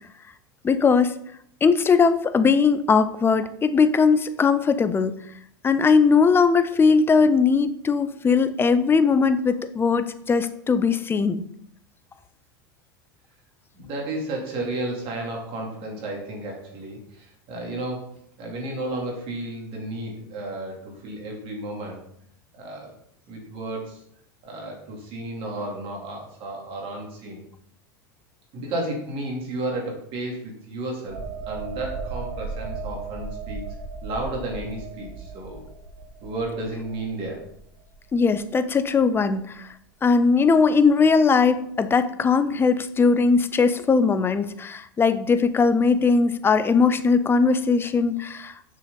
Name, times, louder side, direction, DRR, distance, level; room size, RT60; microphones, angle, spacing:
voice 1, 0.6-1.2 1.6-5.1 5.6-11.4 38.1-39.7 40.0-48.5, left 5 dB, 20° left, 12 dB, 0.6 m, -19 dB
voice 2, 13.7-18.0 18.4-22.0 22.5-22.9 23.3-24.0 24.4-27.4 28.5-31.2 31.4-33.6 34.0-35.7 36.2-37.4, right 2 dB, 50° right, 0 dB, 3.0 m, -32 dB
sound 1, 31.1-38.5 38.9-39.1, right 4 dB, 65° right, 1.4 m, -36 dB
6.7 x 6.4 x 4.0 m, 0.70 s
hypercardioid pair, 100°, 12 cm